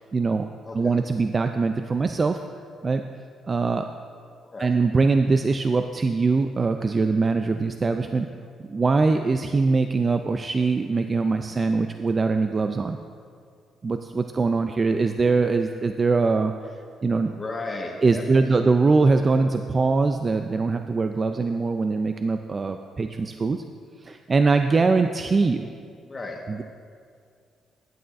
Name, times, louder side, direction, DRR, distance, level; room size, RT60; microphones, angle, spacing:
voice 1, 0.0-2.4 2.8-3.0 3.4-3.9 4.6-8.3 8.7-13.0 13.8-16.7 17.0-17.3 18.0-23.6 24.0-25.7 26.5-26.6, right 4 dB, 35° right, 7 dB, 0.3 m, -22 dB
voice 2, 17.3-18.5 26.0-26.4, left 2 dB, 30° left, 1 dB, 1.3 m, -35 dB
12.0 x 9.4 x 2.5 m, 2.2 s
cardioid pair, 90°, 0 cm